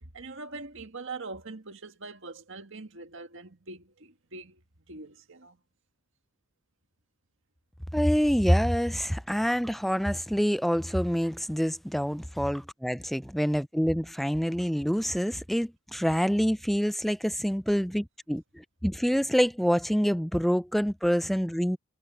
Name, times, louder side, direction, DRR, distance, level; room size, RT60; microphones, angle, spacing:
voice 1, 0.0-4.6 4.9-5.6, right 3 dB, 60° right, 1.9 m, -42 dB
voice 2, 7.9-21.8, equal, ahead, 0.5 m, -26 dB
head